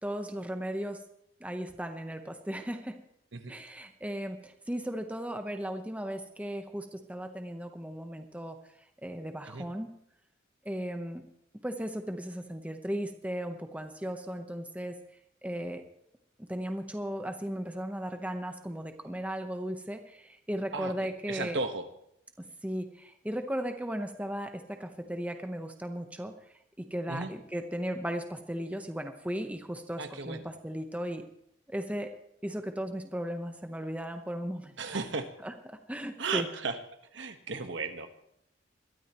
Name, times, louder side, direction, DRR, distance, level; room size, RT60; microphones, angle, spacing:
voice 1, 0.0-1.0 1.4-3.0 3.5-8.6 9.0-9.9 10.6-11.2 11.6-14.9 15.4-15.8 16.5-21.6 22.6-26.3 26.8-31.2 31.7-32.1 32.4-34.7 35.4-36.5, equal, 5° right, 5 dB, 0.9 m, -36 dB
voice 2, 20.7-21.9 27.1-27.3 30.0-30.5 34.8-35.3 36.2-36.8 37.1-38.1, right 4 dB, 65° right, 7 dB, 1.3 m, -35 dB
22.0 x 13.0 x 3.0 m, 0.74 s
head